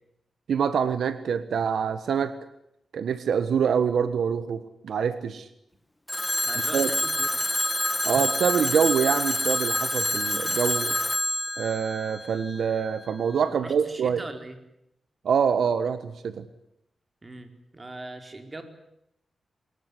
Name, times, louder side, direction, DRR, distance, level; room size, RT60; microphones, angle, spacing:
voice 1, 0.5-2.4 2.9-5.5 6.7-6.9 8.0-11.0 11.6-14.2 15.2-16.5, right 7 dB, 85° right, 12 dB, 1.4 m, -25 dB
Telephone, 6.1-12.9, left 1 dB, 10° left, 2.2 m, -27 dB
voice 2, 6.5-7.3 13.6-14.6 17.2-18.6, right 2 dB, 30° right, 7 dB, 4.6 m, -40 dB
23.5 x 21.0 x 9.9 m, 0.80 s
cardioid pair, 80°, 0 cm